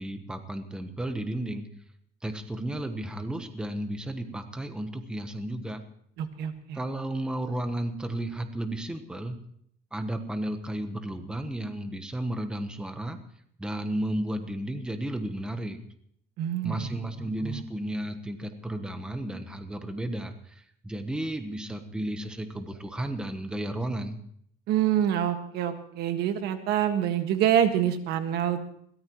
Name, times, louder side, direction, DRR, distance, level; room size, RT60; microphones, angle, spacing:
voice 1, 0.0-1.7 2.2-5.8 6.7-9.4 9.9-13.2 13.6-15.8 16.6-24.2, right 1 dB, 5° right, 7 dB, 1.1 m, -33 dB
voice 2, 6.2-6.8 16.4-16.9 17.4-17.6 24.7-28.7, right 10 dB, 65° right, 8 dB, 1.7 m, -26 dB
22.0 x 18.0 x 3.1 m, 0.66 s
cardioid pair, 170°, 18 cm